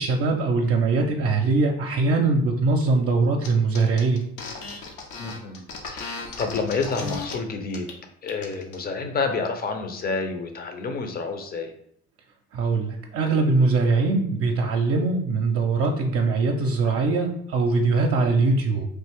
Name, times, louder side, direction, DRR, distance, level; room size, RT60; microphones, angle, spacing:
voice 1, 0.0-4.2 12.5-18.9, right 3 dB, 50° right, 2 dB, 0.6 m, -22 dB
sound 1, 3.4-3.5 3.7-7.3 7.7-7.9 8.2-8.8, left 3 dB, 75° left, 0.8 m, -35 dB
voice 2, 5.2-7.9 8.2-11.7, left 4 dB, 30° left, 5 dB, 0.6 m, -29 dB
3.2 x 2.4 x 3.5 m, 0.67 s
supercardioid pair, 75°, 29 cm